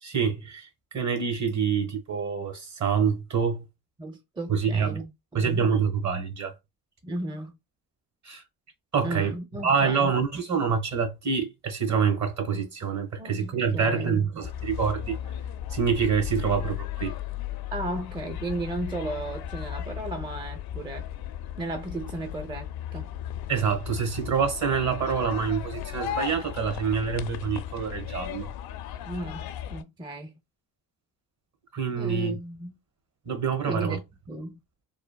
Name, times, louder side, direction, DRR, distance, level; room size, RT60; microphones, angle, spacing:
voice 1, 0.0-0.7 0.9-3.6 4.5-5.0 5.3-6.5 8.2-8.4 8.9-9.3 9.6-15.2 15.7-17.1 23.5-28.5 31.7-32.4 33.2-34.0, right 6 dB, 45° right, 1.3 m, -26 dB
voice 2, 4.0-5.1 5.4-5.7 7.0-7.6 9.0-10.2 13.2-14.2 17.7-21.0 21.6-23.1 29.0-30.3 32.0-32.8 33.7-34.6, right 2 dB, 10° right, 0.5 m, -35 dB
sound 1, 14.4-29.8, left 11 dB, 70° left, 0.5 m, -36 dB
3.4 x 2.4 x 2.2 m
cardioid pair, 90°, 39 cm